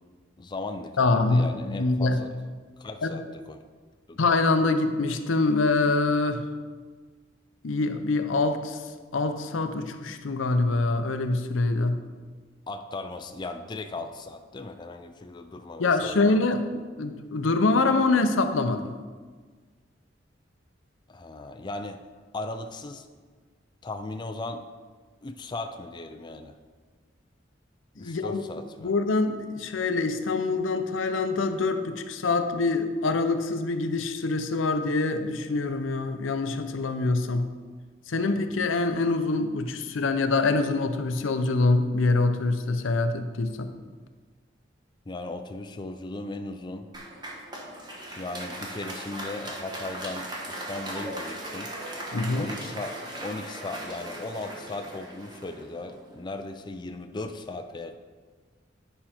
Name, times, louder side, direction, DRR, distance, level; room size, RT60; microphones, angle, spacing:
voice 1, 0.4-2.3 2.8-3.6 4.1-4.2 12.7-16.4 21.1-22.0 22.3-23.1 23.8-24.6 25.2-26.6 28.0-28.9 45.1-46.9 48.2-51.7 52.3-58.0, left 2 dB, 25° left, 6 dB, 0.4 m, -37 dB
voice 2, 1.0-2.2 3.0-3.2 4.2-6.5 7.6-8.8 9.1-12.0 15.8-16.6 17.0-18.9 28.0-28.4 28.8-37.5 38.1-43.7 52.1-52.5, left 3 dB, 85° left, 8 dB, 0.6 m, -25 dB
Applause, 46.9-56.3, right 1 dB, 20° right, 1.2 m, -38 dB
9.9 x 5.6 x 4.3 m, 1.5 s
head